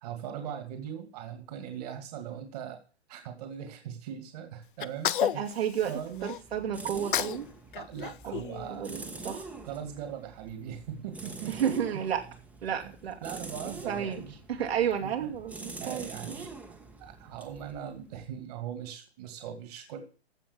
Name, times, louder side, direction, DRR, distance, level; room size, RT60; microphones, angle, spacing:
voice 1, 0.0-2.8 3.1-5.4 5.9-6.3 7.7-8.9 9.6-11.7 12.8-12.9 13.2-14.3 15.0-15.3 15.8-16.5 17.0-20.0, right 9 dB, 35° right, 6 dB, 2.5 m, -40 dB
Sneeze, 4.8-6.4 6.9-7.5 7.7-9.2, left 11 dB, 50° left, 0.6 m, -32 dB
voice 2, 5.2-5.9 6.2-7.5 8.2-8.4 8.7-9.4 11.5-12.2 12.6-13.2 13.6-14.2 14.5-16.5, right 8 dB, 65° right, 1 dB, 2.8 m, -32 dB
sound 1, 5.8-18.4, right 3 dB, 5° right, 1.2 m, -45 dB
15.0 x 5.9 x 7.2 m, 0.38 s
hypercardioid pair, 150°, 34 cm